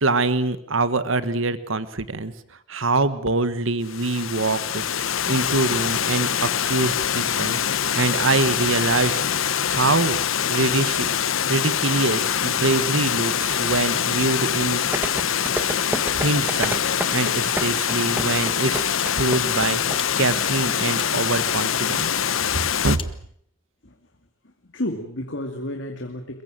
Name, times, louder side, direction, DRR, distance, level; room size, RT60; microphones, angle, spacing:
voice 1, 0.0-2.3 2.7-4.8 5.2-7.6 7.9-9.2 9.7-10.2 10.5-11.1 11.5-14.8 16.1-16.8 17.1-22.1 22.5-23.0, right 3 dB, 75° right, 13 dB, 1.5 m, -24 dB
Water, 3.8-23.0, left 8 dB, 80° left, 1.0 m, -24 dB
sound 1, 14.9-20.0 20.2-20.3, right 1 dB, 10° right, 1.5 m, -28 dB
sound 2, 19.9-20.1 20.9-21.1 22.0-22.1 22.9-23.2, left 7 dB, 25° left, 1.1 m, -37 dB
voice 2, 24.4-26.4, left 1 dB, 65° left, 4 dB, 2.4 m, -31 dB
22.5 x 22.5 x 7.6 m, 0.65 s
head